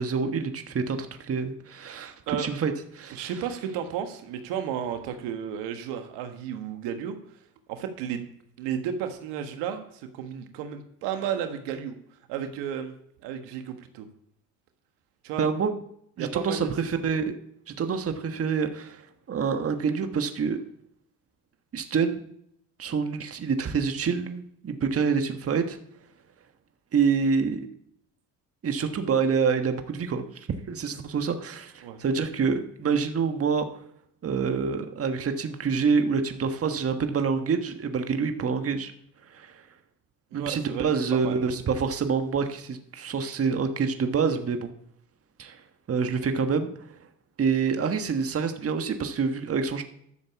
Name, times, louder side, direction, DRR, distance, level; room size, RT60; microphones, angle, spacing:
voice 1, 0.0-3.3 15.4-15.7 16.2-17.3 17.7-20.6 21.7-22.2 22.8-25.8 26.9-27.7 28.6-33.8 34.2-38.9 39.3-39.6 40.3-44.7 45.4-45.6 45.9-46.7 47.4-49.8, right 5 dB, 35° right, 7 dB, 1.4 m, -27 dB
voice 2, 3.1-7.1 7.7-8.2 8.6-11.9 12.3-12.9 13.2-14.1 15.2-15.5 16.2-16.7 31.8-32.0 40.3-41.4, right 8 dB, 75° right, 7 dB, 1.5 m, -33 dB
12.0 x 6.9 x 7.1 m, 0.71 s
supercardioid pair, 80°, 42 cm